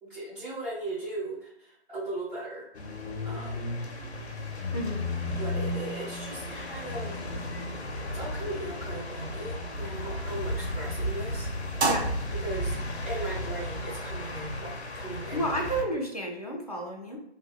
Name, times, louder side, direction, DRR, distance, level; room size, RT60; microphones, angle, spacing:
voice 1, 0.0-2.7 3.2-3.6 5.4-7.2 7.9-11.5 12.3-12.8 13.0-15.6, right 2 dB, 50° right, -12 dB, 1.4 m, -38 dB
sound 1, 2.7-15.8, left 1 dB, 85° left, 0.6 m, -34 dB
voice 2, 4.7-5.1 11.8-12.1 15.3-17.2, right 1 dB, 40° left, -1 dB, 0.4 m, -31 dB
sound 2, 10.3-15.7, right 3 dB, 80° right, 0.6 m, -37 dB
2.7 x 2.1 x 2.3 m, 0.78 s
figure-of-eight pair, 160°, 33 cm